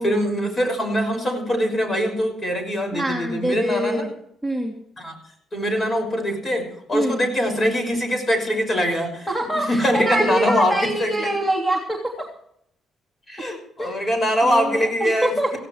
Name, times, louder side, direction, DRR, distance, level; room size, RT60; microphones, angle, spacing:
voice 1, 0.0-4.1 5.0-5.2 5.5-9.3 9.5-11.4 13.3-15.3, equal, 30° left, 4 dB, 6.1 m, -23 dB
voice 2, 2.9-4.1 4.4-4.7 6.9-7.2 9.3-12.3 13.8-13.9 14.4-15.6, right 1 dB, 10° left, -1 dB, 3.0 m, -25 dB
18.5 x 16.0 x 3.3 m, 0.70 s
cardioid pair, 90°, 0 cm